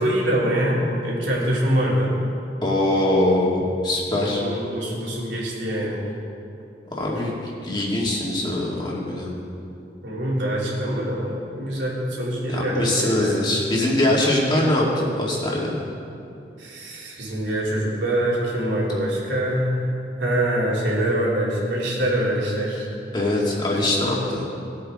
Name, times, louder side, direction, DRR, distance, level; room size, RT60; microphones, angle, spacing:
voice 1, 0.0-2.1 4.1-6.0 10.0-13.4 16.6-19.8 20.2-22.9, right 1 dB, 85° right, -5 dB, 3.2 m, -24 dB
voice 2, 2.6-4.4 7.0-9.4 12.5-15.8 23.1-24.4, left 1 dB, 25° left, -4 dB, 2.4 m, -22 dB
20.0 x 8.4 x 3.8 m, 2.6 s
head